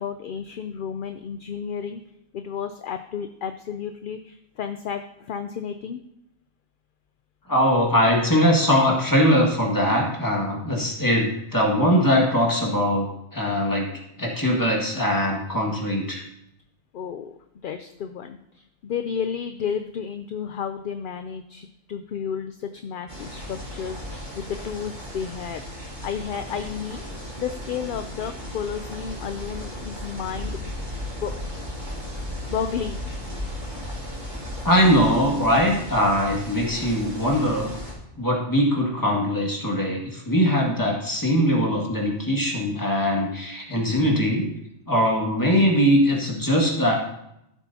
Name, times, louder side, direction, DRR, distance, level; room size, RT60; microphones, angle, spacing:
voice 1, 0.0-2.0 2.3-6.0 16.9-25.6 26.0-27.0 27.4-30.8 31.2-31.3 32.1-33.1 33.7-33.8, left 7 dB, 60° left, 8 dB, 0.6 m, -32 dB
voice 2, 7.5-13.1 13.3-13.9 14.2-16.2 34.6-37.7 38.2-44.5 44.9-47.0, equal, 15° left, -1 dB, 1.9 m, -21 dB
sound 1, 23.1-37.9, equal, 25° right, 3.4 m, -35 dB
14.0 x 8.1 x 2.8 m, 0.81 s
omnidirectional pair, 1.2 m